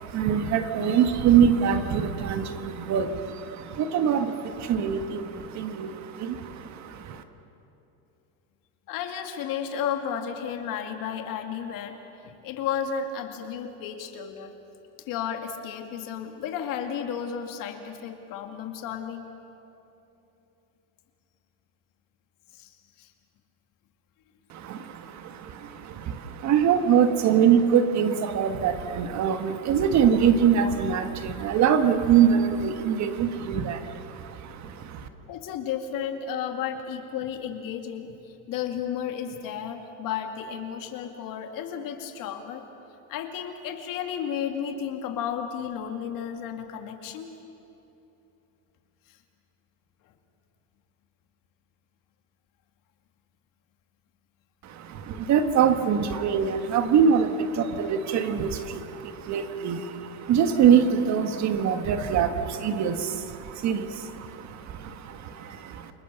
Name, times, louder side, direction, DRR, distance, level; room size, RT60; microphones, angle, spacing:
voice 1, 0.0-7.2 24.5-35.1 54.6-65.9, right 7 dB, 40° right, 8 dB, 1.5 m, -24 dB
voice 2, 8.9-12.0 12.2-14.5 15.1-19.3 22.5-22.7 23.0-23.1 35.0-42.6 43.1-47.3, left 8 dB, 50° left, 5 dB, 2.3 m, -33 dB
29.5 x 20.0 x 6.9 m, 2.9 s
supercardioid pair, 135°, 43 cm